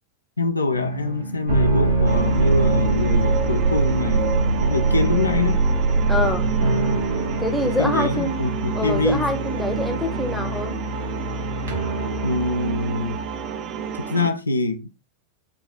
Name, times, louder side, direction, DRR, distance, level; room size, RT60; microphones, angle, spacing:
voice 1, 0.4-4.3 4.6-5.6 7.6-9.3 12.2-13.2 14.0-14.9, left 2 dB, 80° left, 0.6 m, -24 dB
sound 1, 0.7-14.0, right 2 dB, 65° right, 1.6 m, -23 dB
sound 2, 2.0-14.3, right 8 dB, 35° right, 0.6 m, -32 dB
voice 2, 6.1-6.4 7.4-8.4 8.7-10.8, left 1 dB, 5° left, 1.0 m, -25 dB
4.8 x 2.9 x 3.8 m
figure-of-eight pair, 90°, 0 cm